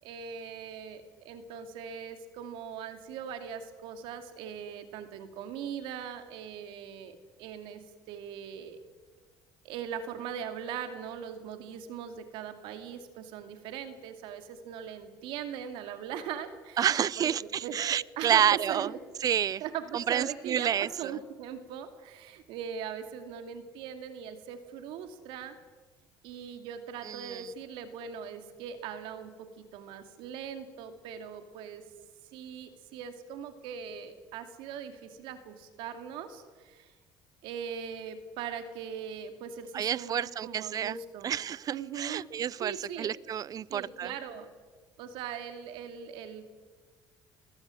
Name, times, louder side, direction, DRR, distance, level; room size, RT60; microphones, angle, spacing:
voice 1, 0.0-8.8 9.6-16.9 17.2-17.8 18.2-19.0 19.6-25.6 26.2-31.8 32.3-36.9 37.4-41.3 41.7-42.2 42.6-43.1 43.7-44.5 45.0-46.5, right 8 dB, 80° right, 7 dB, 2.4 m, -40 dB
voice 2, 16.8-18.9 19.2-19.6 19.9-20.9 27.1-27.5 39.7-41.0 41.2-44.1, right 9 dB, 45° right, 23 dB, 0.5 m, -29 dB
20.5 x 16.0 x 7.8 m, 1.4 s
supercardioid pair, 90°, 9 cm